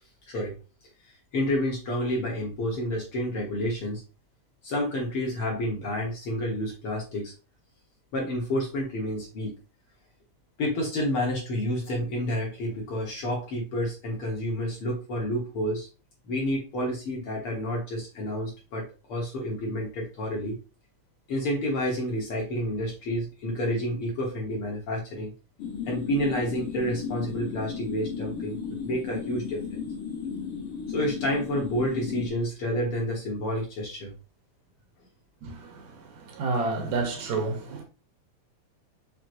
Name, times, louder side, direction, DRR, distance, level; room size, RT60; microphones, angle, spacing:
voice 1, 0.3-0.6 1.3-4.0 4.6-7.3 8.1-9.5 10.6-15.9 16.3-20.6 21.3-25.3 25.9-28.6 28.8-29.8 30.9-34.1, equal, 55° left, 1.9 m, -29 dB
sound 1, 25.6-32.3, left 6 dB, 75° left, 1.3 m, -34 dB
voice 2, 35.4-37.8, right 3 dB, 75° right, 2.2 m, -30 dB
6.1 x 3.1 x 2.6 m
omnidirectional pair, 3.4 m